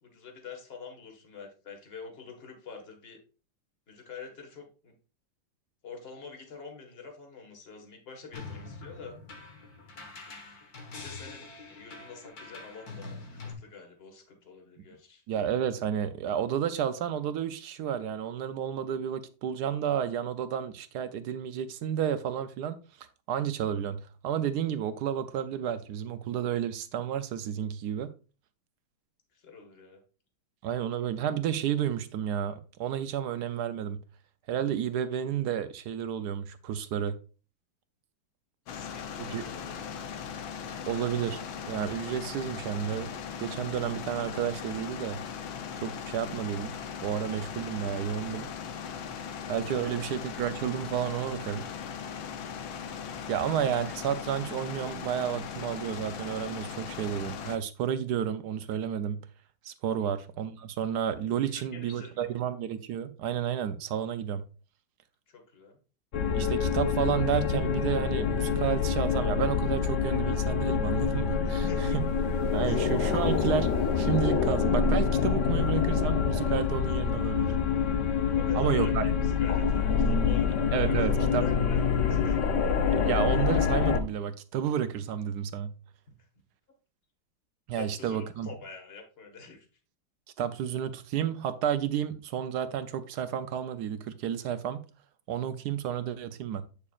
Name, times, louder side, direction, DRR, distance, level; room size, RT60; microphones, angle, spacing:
voice 1, 0.0-3.2 3.9-4.9 5.8-9.1 10.9-13.2 13.4-15.2 29.3-30.0 31.0-31.1 38.7-40.1 49.7-50.0 53.3-53.4 59.9-60.2 61.4-62.4 65.3-65.8 71.4-72.0 72.2-72.3 72.6-73.0 78.3-81.8 82.1-82.4 87.7-89.7, left 5 dB, 30° left, 1.7 m, -46 dB
sound 1, 8.3-13.5, left 3 dB, 50° left, 1.8 m, -44 dB
voice 2, 15.3-28.1 30.6-34.0 34.5-37.1 39.2-39.4 40.9-41.4 41.7-43.1 43.4-45.2 45.8-46.7 47.0-48.5 49.5-51.7 53.3-59.2 59.6-64.4 66.3-71.6 72.5-73.7 74.0-77.5 78.5-79.1 80.7-81.4 82.9-85.7 87.7-88.5 90.4-94.8 95.3-96.6, right 9 dB, 70° right, 1.0 m, -31 dB
sound 2, 38.7-57.6, left 7 dB, 90° left, 1.6 m, -39 dB
sound 3, 66.1-84.0, left 6 dB, 70° left, 0.7 m, -26 dB
8.3 x 6.7 x 2.4 m
omnidirectional pair, 2.1 m